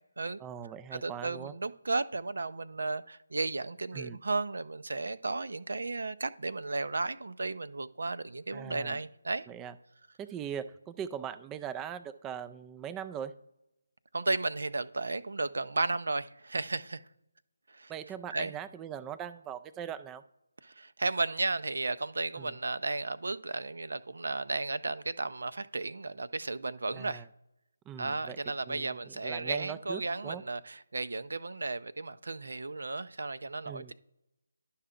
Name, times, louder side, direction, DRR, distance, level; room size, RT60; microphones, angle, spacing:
voice 1, 0.4-1.5 3.9-4.2 8.5-9.0 9.5-9.7 10.2-13.3 17.9-20.2 22.4-22.5 26.9-27.3 27.9-28.4 28.7-30.4 33.7-33.9, right 9 dB, 10° right, 0.3 m, -40 dB
voice 2, 0.9-9.5 14.1-17.0 17.7-17.9 18.3-18.5 20.6-27.2 28.0-33.9, right 3 dB, 70° right, 0.5 m, -34 dB
11.0 x 5.6 x 3.7 m
figure-of-eight pair, 160°, 0 cm